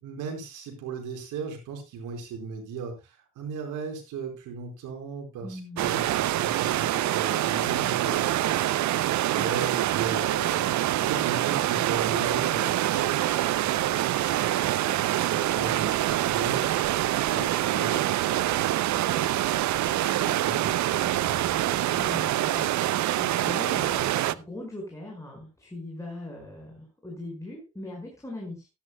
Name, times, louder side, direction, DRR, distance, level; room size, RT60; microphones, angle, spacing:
voice 1, 0.0-8.5 9.2-10.7 11.0-16.9 17.1-19.3 19.8-21.8, right 5 dB, 90° right, 3 dB, 4.6 m, -36 dB
voice 2, 5.4-5.9 21.9-28.7, left 1 dB, 10° left, -1 dB, 5.3 m, -40 dB
sound 1, 5.8-24.3, right 14 dB, 70° right, 0.6 m, -25 dB
16.5 x 12.0 x 2.2 m, 0.25 s
cardioid pair, 90°, 30 cm